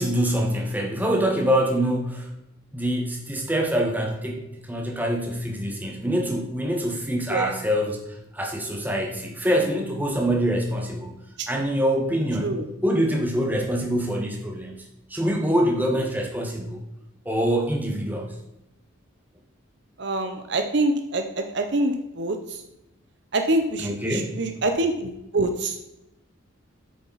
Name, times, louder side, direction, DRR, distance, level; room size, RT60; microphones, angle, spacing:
voice 1, 0.0-2.3 2.7-11.1 11.5-12.5 12.8-16.8 17.2-18.3 23.8-24.3, equal, 10° right, 1 dB, 1.3 m, -25 dB
voice 2, 20.0-22.6 23.3-25.8, right 2 dB, 55° right, 6 dB, 0.7 m, -25 dB
8.8 x 6.8 x 4.0 m, 0.89 s
head